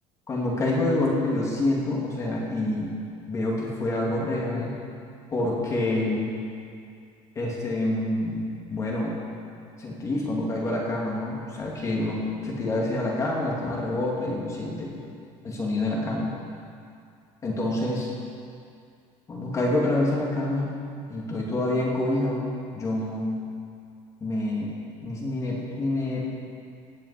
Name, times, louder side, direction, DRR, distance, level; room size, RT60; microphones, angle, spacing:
voice 1, 0.3-2.9 3.3-4.7 5.3-6.3 7.3-8.4 8.7-9.1 9.8-15.0 15.4-16.3 17.4-18.1 19.3-20.7 21.1-22.5 22.7-23.3 24.2-24.7 25.0-26.3, left 2 dB, 25° left, -3 dB, 2.6 m, -27 dB
18.0 x 7.5 x 8.3 m, 2.4 s
cardioid pair, 165°, 13 cm